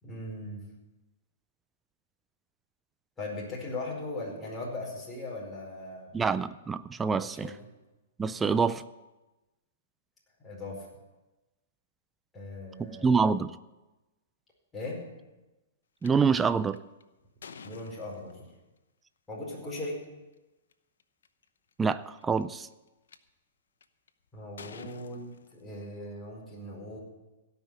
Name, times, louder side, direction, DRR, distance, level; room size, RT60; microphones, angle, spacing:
voice 1, 0.0-0.7 3.2-6.1 7.2-7.7 10.4-10.9 12.3-13.1 14.7-15.0 17.6-18.4 19.3-20.0 24.3-27.0, left 2 dB, 10° left, -5 dB, 4.8 m, -39 dB
voice 2, 6.1-7.5 8.2-8.8 12.8-13.6 16.0-16.8 21.8-22.7, right 5 dB, 10° right, 13 dB, 0.4 m, -26 dB
sound 1, 16.0-16.1 16.7-18.6 19.9-20.0 20.7-20.8 21.0-21.4 22.2-23.2 23.8-24.1 24.6-26.0, left 6 dB, 80° left, 0.9 m, -49 dB
17.0 x 5.9 x 8.4 m, 1.1 s
hypercardioid pair, 135°, 0 cm